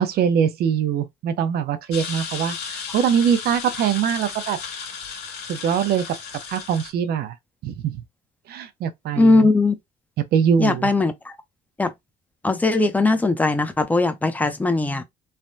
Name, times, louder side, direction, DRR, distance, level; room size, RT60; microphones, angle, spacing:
voice 1, 0.0-4.6 5.5-6.1 6.5-7.3 7.6-8.0 8.5-9.5 10.2-10.9, right 8 dB, 70° right, 0.7 m, -22 dB
sound 1, 1.9-6.9, left 6 dB, 85° left, 1.5 m, -34 dB
voice 2, 9.2-9.8 10.6-11.3 11.8-11.9 12.4-15.0, left 3 dB, 10° left, 0.6 m, -19 dB
3.3 x 2.1 x 2.6 m
cardioid pair, 110°, 17 cm